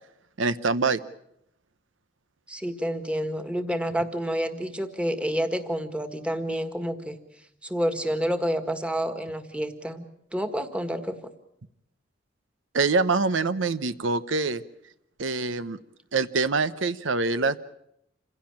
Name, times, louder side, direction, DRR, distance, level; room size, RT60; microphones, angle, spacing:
voice 1, 0.4-1.0 12.7-14.6 15.2-15.8 16.1-17.6, right 4 dB, 80° right, 13 dB, 0.8 m, -25 dB
voice 2, 2.5-7.2 7.6-10.1 10.3-11.1, equal, 5° right, 8 dB, 1.7 m, -29 dB
27.5 x 16.5 x 8.7 m, 0.79 s
head